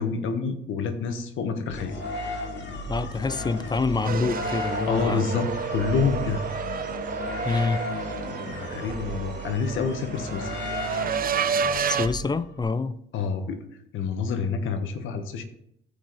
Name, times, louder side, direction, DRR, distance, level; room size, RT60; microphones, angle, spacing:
voice 1, 0.0-1.9 4.9-6.4 8.5-10.6 13.1-13.6 13.9-15.4, left 5 dB, 85° left, 1.3 m, -28 dB
sound 1, 1.7-12.6, left 2 dB, 65° left, 2.2 m, -35 dB
voice 2, 2.9-5.2 7.4-7.8 11.9-13.0, left 4 dB, 20° left, 0.5 m, -26 dB
sound 2, 4.0-12.1, right 7 dB, 45° right, 0.6 m, -30 dB
14.5 x 5.0 x 4.1 m
cardioid pair, 90°, 20 cm